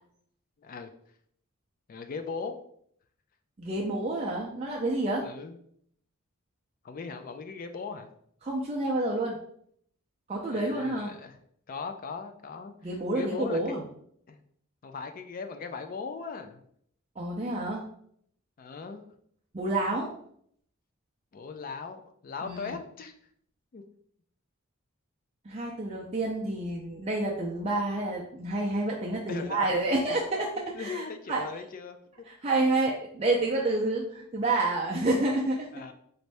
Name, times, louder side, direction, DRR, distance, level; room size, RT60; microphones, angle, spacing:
voice 1, 0.6-0.9 1.9-2.6 5.2-5.6 6.8-8.1 10.5-11.4 11.7-12.7 13.1-13.8 14.3-14.4 14.8-16.6 18.6-19.1 21.3-23.1 23.7-23.8 29.3-29.8 30.1-30.2 30.7-32.0 33.1-33.2 35.7-35.9, left 5 dB, 40° left, 7 dB, 0.4 m, -38 dB
voice 2, 3.6-5.2 8.4-9.4 10.3-11.1 12.8-13.8 17.2-17.8 19.5-20.1 22.4-22.8 25.5-30.5 30.8-31.4 32.4-35.7, right 2 dB, 30° right, -3 dB, 0.4 m, -29 dB
4.1 x 2.6 x 3.3 m, 0.66 s
head